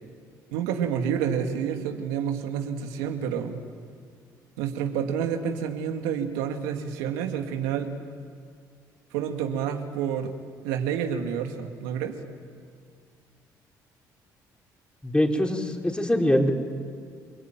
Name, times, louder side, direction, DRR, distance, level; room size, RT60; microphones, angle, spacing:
voice 1, 0.5-3.6 4.6-7.9 9.1-10.3 10.6-12.2, right 8 dB, 85° right, 5 dB, 2.0 m, -29 dB
voice 2, 15.0-16.5, left 1 dB, 10° left, 1 dB, 4.8 m, -23 dB
28.5 x 22.0 x 9.2 m, 2.1 s
hypercardioid pair, 60°, 9 cm